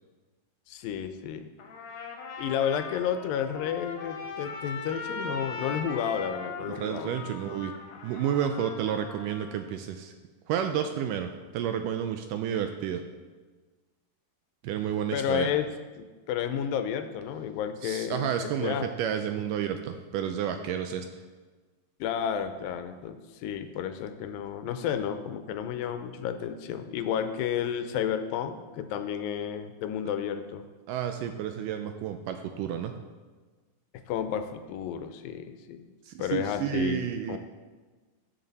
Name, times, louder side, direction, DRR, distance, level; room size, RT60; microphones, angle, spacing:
voice 1, 0.7-1.5 2.4-7.6 15.1-15.7 16.0-18.9 22.0-30.6 34.1-35.9 36.2-37.4, left 8 dB, 80° left, 9 dB, 2.3 m, -32 dB
Trumpet, 1.6-9.6, left 3 dB, 60° left, 2.1 m, -40 dB
voice 2, 6.7-7.7 8.0-10.1 10.5-13.0 14.6-15.5 17.8-21.1 30.9-32.9 36.1-37.4, right 9 dB, 80° right, 7 dB, 2.0 m, -31 dB
14.5 x 7.3 x 4.1 m, 1.3 s
omnidirectional pair, 4.1 m